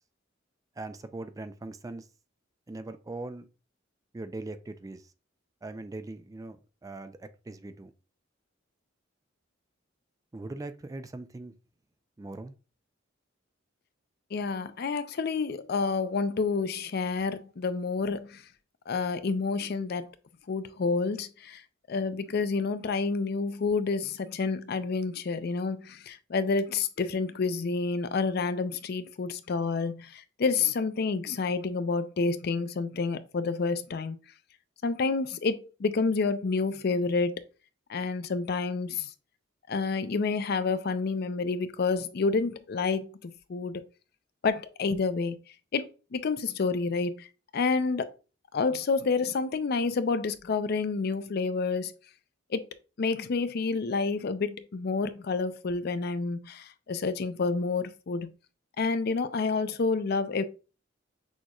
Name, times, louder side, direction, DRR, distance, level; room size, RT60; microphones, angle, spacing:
voice 1, 0.8-2.1 2.7-3.5 4.1-5.1 5.6-7.9 10.3-11.5 12.2-12.5, right 2 dB, 20° right, 0.3 m, -40 dB
voice 2, 14.3-18.4 18.9-20.1 20.5-21.6 21.9-34.2 34.8-37.4 37.9-39.1 39.7-43.8 44.4-45.4 45.7-47.3 47.5-48.1 48.5-52.0 52.5-52.7 53.0-58.3 58.8-60.4, left 4 dB, 55° left, 0.4 m, -29 dB
6.3 x 3.0 x 2.3 m
head